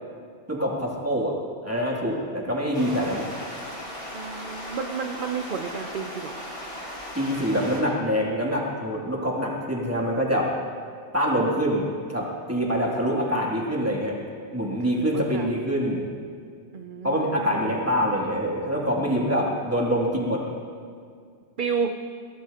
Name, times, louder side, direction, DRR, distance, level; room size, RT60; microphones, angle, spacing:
voice 1, 0.5-1.3 1.6-3.3 7.1-10.5 11.1-14.2 14.5-16.1 17.0-20.4, equal, 15° right, -4 dB, 2.8 m, -25 dB
sound 1, 2.7-7.8, equal, 75° left, 4.8 m, -37 dB
voice 2, 4.1-6.4 13.0-13.3 14.9-15.5 16.7-17.8 19.1-19.3 21.6-21.9, right 6 dB, 50° right, 5 dB, 0.8 m, -32 dB
23.0 x 18.0 x 2.9 m, 2.2 s
omnidirectional pair, 1.2 m